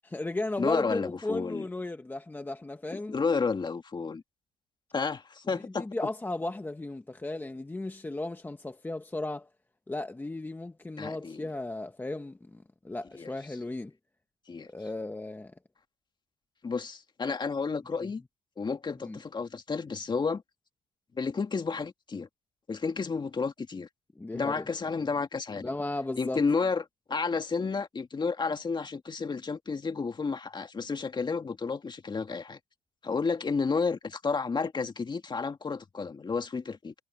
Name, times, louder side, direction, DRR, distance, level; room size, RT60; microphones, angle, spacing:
voice 1, 0.0-3.1 5.5-9.5 9.9-13.9 14.7-15.5 18.0-18.1 19.0-19.2 24.1-24.7 25.6-26.4, left 2 dB, 10° left, 1.1 m, -35 dB
voice 2, 0.6-1.7 2.9-4.2 4.9-5.9 11.0-11.4 13.2-13.3 14.5-14.7 16.6-18.2 18.6-20.4 21.2-22.3 22.7-23.9 24.3-25.7 26.2-26.8 27.1-32.6 33.0-36.9, left 4 dB, 25° left, 2.1 m, -31 dB
cardioid pair, 110°, 17 cm